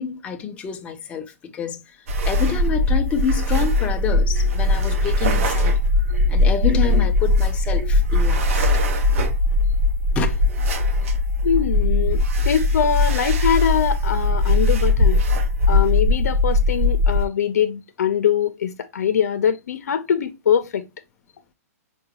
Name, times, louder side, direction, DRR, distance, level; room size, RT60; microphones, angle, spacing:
voice 1, 0.0-1.8 2.2-5.7 6.3-8.7 10.2-10.4, left 6 dB, 15° left, 0.4 m, -28 dB
sound 1, 2.1-17.3, left 2 dB, 55° right, 0.7 m, -19 dB
voice 2, 11.4-15.2 15.7-20.9, left 8 dB, 80° left, 0.6 m, -22 dB
4.6 x 2.3 x 2.8 m
hypercardioid pair, 155°, 8 cm